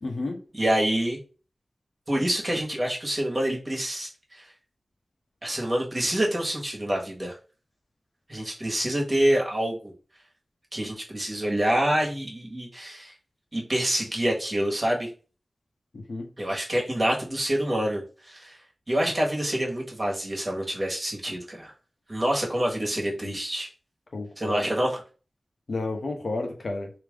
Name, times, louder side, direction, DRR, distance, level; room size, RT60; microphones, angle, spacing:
voice 1, 0.0-0.4 15.9-16.3 23.2-23.3 24.1-24.7 25.7-26.9, left 2 dB, 85° left, 0.9 m, -31 dB
voice 2, 0.5-1.2 2.1-4.5 5.4-7.3 8.3-9.9 10.7-13.1 13.5-15.1 16.4-18.6 18.9-21.7 22.1-23.7 24.4-25.0, right 1 dB, 40° right, 1.4 m, -27 dB
3.4 x 2.9 x 3.5 m
wide cardioid pair, 50°, 0 cm